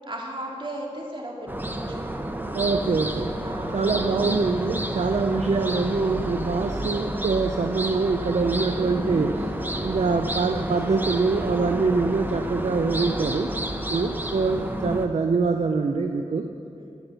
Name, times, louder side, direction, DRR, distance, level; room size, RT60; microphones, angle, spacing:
voice 1, 0.1-1.3 1.7-2.0 3.4-3.8 16.8-16.9, right 1 dB, 40° right, -1 dB, 2.2 m, -35 dB
sound 1, 1.5-15.1, right 1 dB, 15° right, 0.9 m, -30 dB
voice 2, 2.5-3.4 3.7-13.5 13.9-16.5, right 4 dB, 65° right, 5 dB, 0.5 m, -24 dB
15.0 x 6.0 x 6.7 m, 2.6 s
wide cardioid pair, 50°, 12 cm